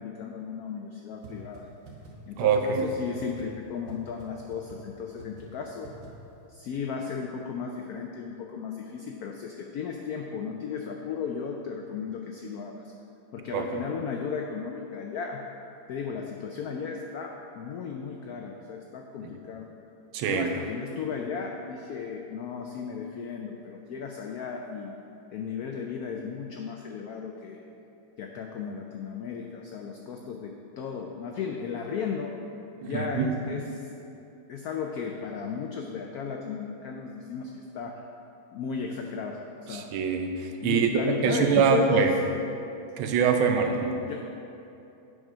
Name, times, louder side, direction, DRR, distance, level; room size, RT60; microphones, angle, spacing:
voice 1, 0.0-1.7 2.3-5.9 6.5-12.9 13.3-15.5 15.9-19.7 20.3-25.0 25.3-27.6 28.2-32.4 32.8-33.8 34.5-38.0 38.5-39.9 40.6-42.1 43.4-44.2, left 6 dB, 90° left, 2 dB, 0.8 m, -35 dB
sound 1, 1.2-1.3 1.5-1.6 1.9-2.1 2.5-2.8 3.2-3.4 3.9-4.0 4.2-4.3 4.5-4.8 5.2-5.4 5.8-6.1, right 4 dB, 60° right, 1.8 m, -46 dB
voice 2, 2.4-2.9 13.5-13.6 20.1-20.5 32.8-33.3 39.7-42.1 43.0-44.0, right 6 dB, 85° right, 5 dB, 1.5 m, -24 dB
7.9 x 4.9 x 5.4 m, 2.9 s
omnidirectional pair, 2.2 m